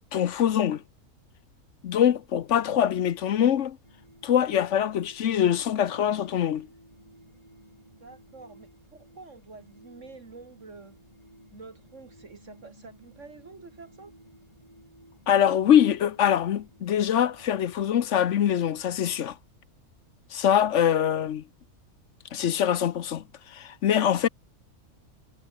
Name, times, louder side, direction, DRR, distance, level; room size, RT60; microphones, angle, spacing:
voice 1, 0.1-0.8 1.8-3.8 4.2-6.7 15.3-19.4 20.3-21.4 22.3-24.3, left 9 dB, 60° left, 1.0 m, -23 dB
sound 1, 3.8-17.5, right 1 dB, 25° right, 7.6 m, -55 dB
voice 2, 8.0-11.0 11.5-14.1, right 4 dB, 55° right, 2.4 m, -48 dB
omnidirectional pair, 1.5 m